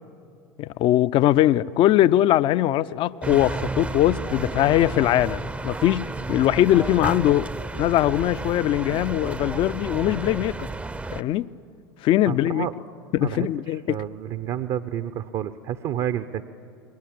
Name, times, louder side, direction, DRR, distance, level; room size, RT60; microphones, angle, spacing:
voice 1, 0.6-7.5 7.8-10.7 11.1-11.5 12.0-12.7 13.1-14.0, left 13 dB, 45° left, 0.5 m, -21 dB
sound 1, 3.2-11.2, right 3 dB, 10° right, 0.6 m, -32 dB
voice 2, 12.3-12.7 13.2-13.5 13.9-16.4, right 11 dB, 45° right, 0.8 m, -29 dB
29.0 x 21.5 x 7.7 m
hypercardioid pair, 80°, 12 cm